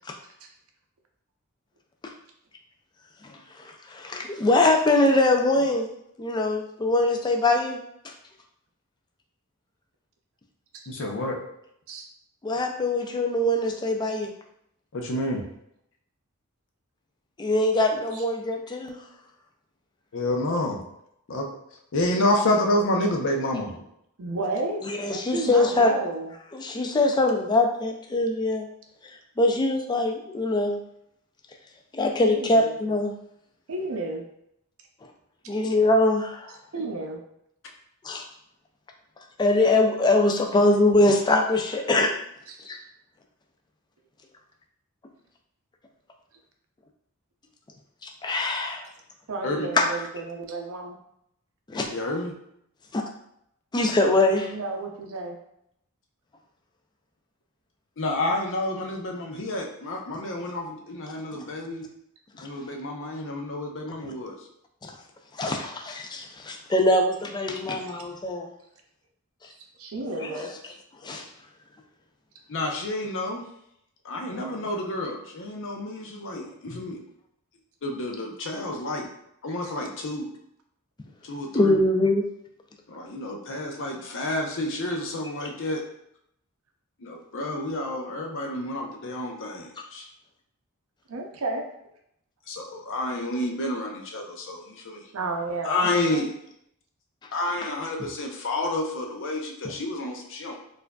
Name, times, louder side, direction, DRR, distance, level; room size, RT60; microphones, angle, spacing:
voice 1, 3.9-5.9 6.2-7.8 8.0-8.1 12.4-14.3 17.4-19.0 24.8-25.9 26.5-28.7 29.4-30.8 31.9-33.1 35.5-36.5 38.0-38.2 39.4-42.1 42.7-42.8 48.2-48.9 49.8-49.9 51.7-51.9 52.9-53.0 53.7-54.5 62.4-62.5 64.8-64.9 65.4-68.5 70.2-70.5 71.0-71.2 76.3-76.4 78.6-78.7 81.5-82.2, left 2 dB, 20° left, 2 dB, 0.3 m, -23 dB
voice 2, 10.9-11.4 14.9-15.4 20.1-20.8 21.3-21.5 21.9-23.8 49.4-49.7 51.8-52.3 58.0-61.9 62.4-64.4 72.5-73.4 74.0-77.0 77.8-79.1 79.4-80.3 81.2-81.8 82.9-85.8 87.0-90.1 92.5-95.1 95.6-96.3 97.3-100.5, left 1 dB, 60° left, 2 dB, 0.6 m, -29 dB
voice 3, 24.2-26.3 32.3-32.7 33.7-34.2 36.7-37.2 42.5-42.6 49.3-51.0 54.5-55.4 69.6-70.5 74.4-74.7 91.1-91.7 95.1-95.9 96.1-96.3, right 2 dB, 65° right, 2 dB, 0.5 m, -32 dB
4.6 x 2.5 x 2.2 m, 0.75 s
head